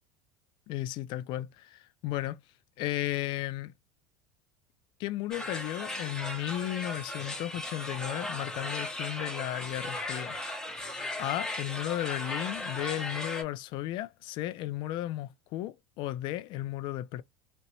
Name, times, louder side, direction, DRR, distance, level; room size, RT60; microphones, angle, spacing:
voice 1, 0.7-2.4 2.8-3.7 5.0-10.4 11.2-17.2, left 14 dB, 55° left, 0.3 m, -34 dB
sound 1, 5.3-13.4, left 1 dB, 5° left, 0.8 m, -37 dB
2.8 x 2.0 x 2.9 m
supercardioid pair, 95°, 10 cm